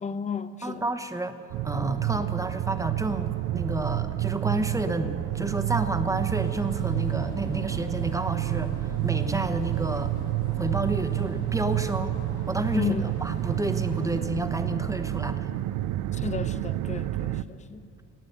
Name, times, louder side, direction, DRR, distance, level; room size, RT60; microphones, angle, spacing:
voice 1, 0.0-0.9 12.7-13.3 16.1-18.0, left 6 dB, 25° left, 0.6 m, -33 dB
voice 2, 0.6-1.4 1.6-10.1 10.5-12.2 12.5-12.9 13.2-15.5, right 2 dB, 10° right, 0.9 m, -30 dB
sound 1, 1.5-17.4, right 15 dB, 80° right, 0.5 m, -29 dB
sound 2, 6.3-14.2, left 3 dB, 75° left, 2.1 m, -44 dB
18.5 x 8.1 x 6.8 m
cardioid pair, 90°, 30 cm